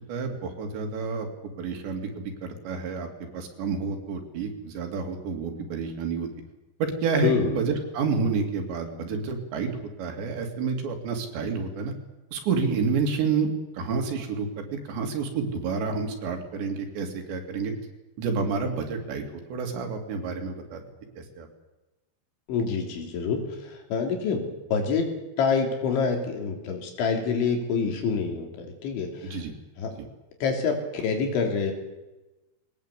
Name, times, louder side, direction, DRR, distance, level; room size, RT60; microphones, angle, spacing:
voice 1, 0.1-1.3 1.6-3.1 3.3-6.3 6.8-9.7 10.0-11.9 12.3-13.5 13.7-17.7 18.2-19.2 19.5-20.8 21.2-21.5 29.2-29.5, right 5 dB, 75° right, 4 dB, 4.7 m, -29 dB
voice 2, 7.2-7.5 22.5-25.1 25.4-29.4 29.8-29.9 30.4-31.7, left 5 dB, 85° left, 3 dB, 5.6 m, -27 dB
21.5 x 19.0 x 8.4 m, 1.1 s
omnidirectional pair, 5.2 m